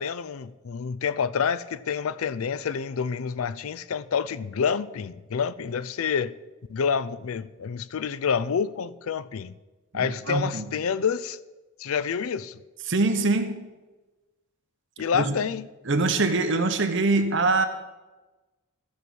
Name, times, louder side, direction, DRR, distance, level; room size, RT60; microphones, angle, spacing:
voice 1, 0.0-6.3 6.7-9.5 9.9-11.4 11.8-12.6 15.0-15.7, left 6 dB, 85° left, 0.5 m, -28 dB
voice 2, 10.0-10.8 12.9-13.7 15.1-15.4 15.9-17.7, right 3 dB, 60° right, 1.1 m, -24 dB
13.5 x 5.4 x 6.2 m
head